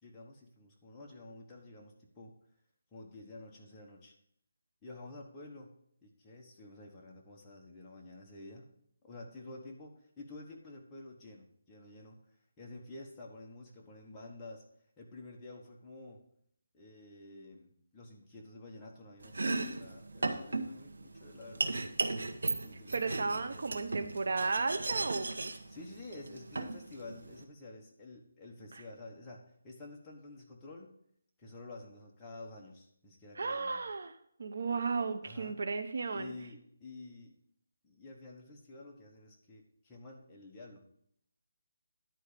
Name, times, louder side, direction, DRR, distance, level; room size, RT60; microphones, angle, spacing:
voice 1, 0.0-2.3 2.9-4.1 4.8-5.7 6.0-8.7 9.0-12.2 12.6-14.6 15.0-16.2 16.7-21.8 22.6-23.7 25.7-31.0 31.4-33.8 35.2-35.6 36.1-37.3 37.8-40.9, left 2 dB, 10° left, -3 dB, 1.2 m, -50 dB
Domestic sounds home sounds, 19.2-27.4, right 3 dB, 90° right, 1.1 m, -37 dB
voice 2, 22.9-25.5 28.7-28.8 33.4-34.1 34.4-36.3, right 4 dB, 60° right, 9 dB, 0.8 m, -34 dB
11.0 x 4.6 x 6.7 m, 0.68 s
hypercardioid pair, 170°, 0 cm